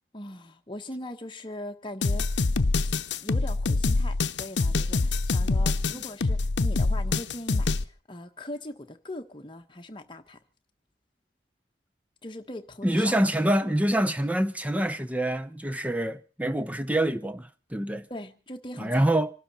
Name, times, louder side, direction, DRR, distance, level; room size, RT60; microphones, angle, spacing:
voice 1, 0.1-2.5 2.8-2.9 3.2-10.4 12.2-13.1 18.1-19.1, left 1 dB, 30° left, 1.3 m, -40 dB
sound 1, 2.0-7.8, left 3 dB, 85° left, 0.7 m, -25 dB
voice 2, 12.8-18.1 18.8-19.3, right 1 dB, 10° right, 0.8 m, -26 dB
26.5 x 12.0 x 4.3 m
head